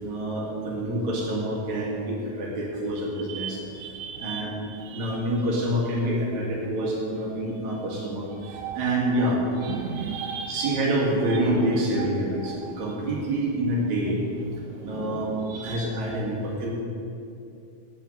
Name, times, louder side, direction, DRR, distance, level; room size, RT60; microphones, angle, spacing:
voice 1, 0.0-3.6 4.2-4.5 4.9-9.4 10.5-14.2 14.7-15.4 15.6-16.7, right 1 dB, 55° right, -3 dB, 3.0 m, -27 dB
voice 2, 3.8-4.4 4.9-5.1 8.4-8.9 9.7-10.7 15.5-15.8, right 7 dB, 80° right, 3 dB, 2.1 m, -34 dB
13.0 x 4.9 x 7.8 m, 2.6 s
omnidirectional pair, 4.3 m